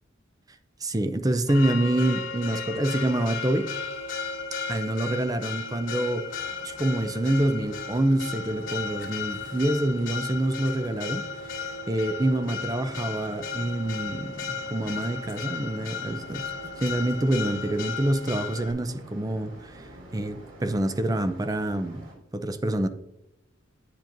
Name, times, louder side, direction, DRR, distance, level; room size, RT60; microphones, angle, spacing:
voice 1, 0.8-3.7 4.7-6.3 6.6-11.2 11.9-14.5 14.7-16.4 16.8-19.8 20.1-22.1 22.3-22.9, right 1 dB, 20° right, 0.5 m, -26 dB
Church bell, 1.5-18.7, left 5 dB, 85° left, 2.2 m, -35 dB
sound 1, 6.3-22.1, right 1 dB, 85° right, 2.9 m, -48 dB
8.9 x 7.5 x 2.6 m
head